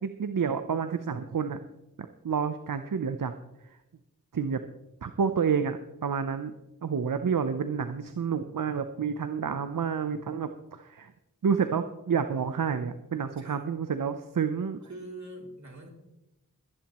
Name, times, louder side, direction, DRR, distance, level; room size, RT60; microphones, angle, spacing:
voice 1, 0.0-1.6 2.2-3.3 4.3-4.6 5.0-5.8 6.0-6.5 6.8-11.1 11.4-14.8, right 6 dB, 70° right, 9 dB, 0.7 m, -29 dB
voice 2, 13.1-13.6 14.9-15.9, right 1 dB, 55° right, 0 dB, 3.3 m, -44 dB
21.0 x 10.5 x 3.0 m, 0.91 s
wide cardioid pair, 40°, 34 cm